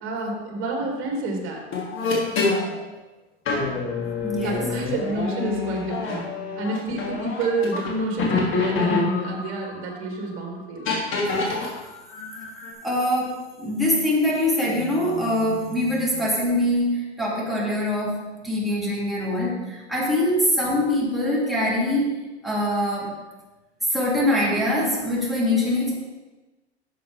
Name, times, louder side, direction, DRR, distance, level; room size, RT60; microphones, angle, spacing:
voice 1, 0.0-1.7 4.4-6.2 6.6-10.9, right 2 dB, 40° right, 0 dB, 3.0 m, -28 dB
sound 1, 1.7-2.7 3.5-7.9 8.2-9.9 10.9-11.7 12.1-12.7, left 4 dB, 35° left, 2.8 m, -26 dB
voice 2, 4.2-4.6 12.8-22.1 22.4-23.2 23.9-25.9, left 1 dB, ahead, -6 dB, 3.2 m, -23 dB
11.0 x 7.4 x 3.6 m, 1.1 s
hypercardioid pair, 100°, 33 cm